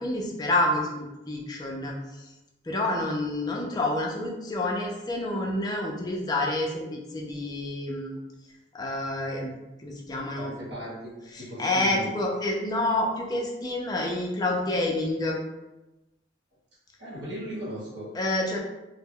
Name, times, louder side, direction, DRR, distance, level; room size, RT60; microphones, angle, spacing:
voice 1, 0.0-1.9 2.7-8.2 8.7-9.5 9.8-10.6 11.3-15.4 18.1-18.6, left 2 dB, 20° left, -1 dB, 0.4 m, -28 dB
voice 2, 10.4-11.1 11.4-12.1 17.0-18.1, equal, 60° right, -6 dB, 1.0 m, -37 dB
2.1 x 2.0 x 3.5 m, 1.0 s
head